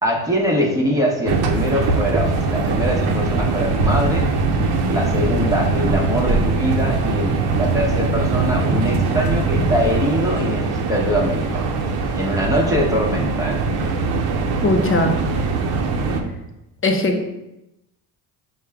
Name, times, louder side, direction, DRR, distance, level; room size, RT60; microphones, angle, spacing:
voice 1, 0.0-4.3 4.9-11.6 12.1-13.6, equal, 5° right, -2 dB, 1.1 m, -22 dB
sound 1, 1.3-16.2, right 3 dB, 50° right, 0.7 m, -21 dB
voice 2, 14.6-15.2 16.8-17.3, left 2 dB, 25° left, 5 dB, 0.7 m, -19 dB
5.5 x 2.3 x 3.5 m, 0.91 s
supercardioid pair, 70°, 47 cm